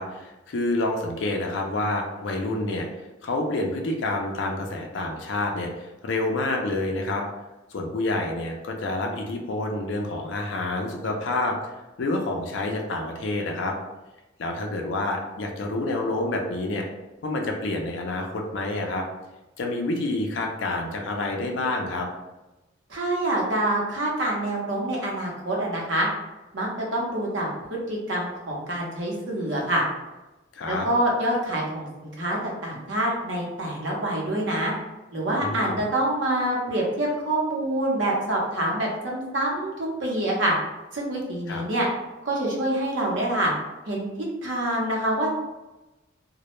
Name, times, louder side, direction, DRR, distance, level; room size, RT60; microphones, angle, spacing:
voice 1, 0.0-2.9 3.2-7.2 7.7-11.6 12.0-13.8 14.4-16.9 17.2-19.0 19.6-22.1 30.5-30.9 35.4-35.9 41.5-41.6, left 2 dB, 70° left, 2 dB, 0.4 m, -28 dB
voice 2, 22.9-26.1 26.5-29.8 30.7-34.7 35.1-40.5 40.9-41.9 42.2-43.5 43.9-44.1 44.4-45.3, right 1 dB, 70° right, -2 dB, 0.7 m, -26 dB
2.2 x 2.0 x 3.0 m, 1.0 s
head